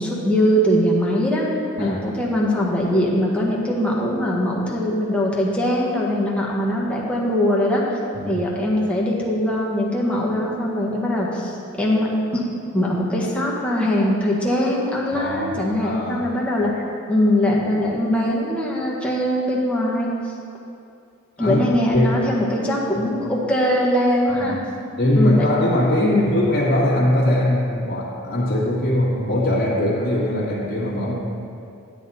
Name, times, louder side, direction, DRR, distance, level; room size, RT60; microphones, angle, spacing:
voice 1, 0.0-1.4 1.8-7.8 8.2-12.1 12.3-12.4 12.7-20.1 21.4-24.6 25.1-25.5 26.0-26.4, equal, 5° left, -5 dB, 1.5 m, -21 dB
voice 2, 15.1-16.3 21.4-21.6 21.9-22.2 22.9-23.0 24.3-24.6 25.0-31.2, left 1 dB, 50° left, -10 dB, 1.9 m, -21 dB
12.0 x 8.8 x 4.2 m, 2.5 s
head